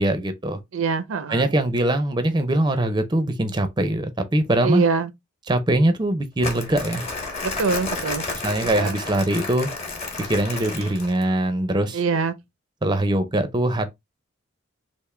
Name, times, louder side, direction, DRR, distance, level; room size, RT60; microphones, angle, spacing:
voice 1, 0.0-0.6 1.3-4.8 5.5-7.1 8.4-9.7 10.2-12.0 12.8-13.9, right 1 dB, 20° right, 0.5 m, -22 dB
voice 2, 0.7-1.5 4.6-5.1 7.4-8.3 8.8-9.0 10.8-11.0 11.9-12.4, right 5 dB, 85° right, 0.6 m, -24 dB
Crumpling crinkling, 6.4-11.3, left 3 dB, 30° left, 1.1 m, -31 dB
3.6 x 2.6 x 3.2 m
head